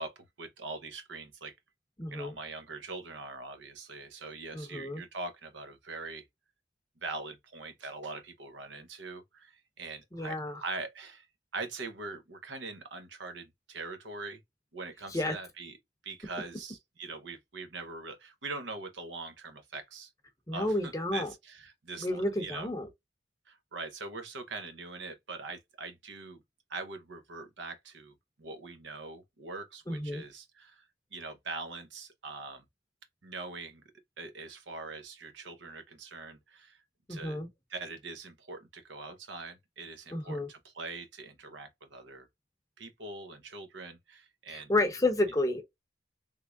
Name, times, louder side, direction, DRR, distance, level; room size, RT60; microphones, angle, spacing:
voice 1, 0.0-1.5 2.1-6.3 7.0-11.3 11.5-14.4 14.7-15.8 16.0-20.1 20.5-22.7 23.5-26.4 26.7-32.6 33.2-33.8 34.2-36.8 37.1-37.4 37.7-42.3 42.8-44.7, right 3 dB, 85° right, 0.8 m, -42 dB
voice 2, 2.0-2.3 4.5-5.0 10.1-10.6 15.1-15.3 20.5-21.3 22.0-22.9 29.9-30.2 37.1-37.5 40.1-40.5 44.5-45.6, left 2 dB, 20° left, 0.7 m, -31 dB
3.6 x 3.1 x 2.2 m
head